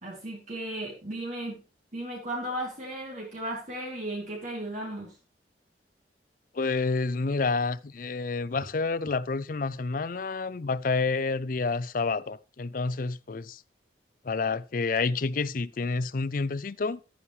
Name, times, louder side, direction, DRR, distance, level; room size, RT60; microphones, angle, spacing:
voice 1, 0.0-1.6 1.9-5.1, right 1 dB, 45° right, 3.2 m, -35 dB
voice 2, 6.5-13.6 14.2-17.0, left 4 dB, 50° left, 0.5 m, -29 dB
13.0 x 9.7 x 3.2 m
head